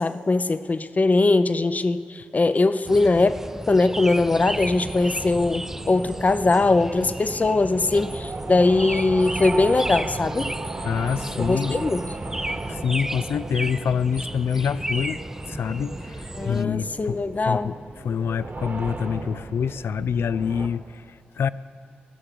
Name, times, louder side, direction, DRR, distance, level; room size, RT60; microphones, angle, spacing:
voice 1, 0.0-10.5 11.3-12.0 16.3-17.7, left 3 dB, 40° left, 12 dB, 0.7 m, -21 dB
sound 1, 2.8-16.6, right 1 dB, 10° right, 0.4 m, -34 dB
sound 2, 4.4-20.7, right 3 dB, 50° right, 1.5 m, -36 dB
voice 2, 10.8-11.8 12.7-21.5, left 7 dB, 75° left, 16 dB, 0.3 m, -26 dB
16.5 x 6.7 x 9.5 m, 2.5 s
supercardioid pair, 45°, 4 cm